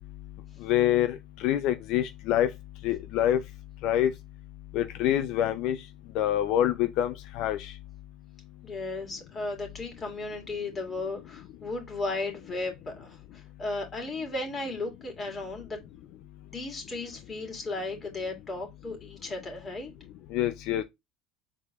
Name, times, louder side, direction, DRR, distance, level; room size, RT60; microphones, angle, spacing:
voice 1, 0.6-2.5 2.8-3.4 3.8-4.1 4.7-5.8 6.1-7.7 20.3-20.8, left 11 dB, 65° left, 0.4 m, -26 dB
voice 2, 8.6-15.8 16.4-19.9, left 2 dB, 30° left, 2.6 m, -35 dB
4.6 x 4.2 x 2.3 m
hypercardioid pair, 85°, 0 cm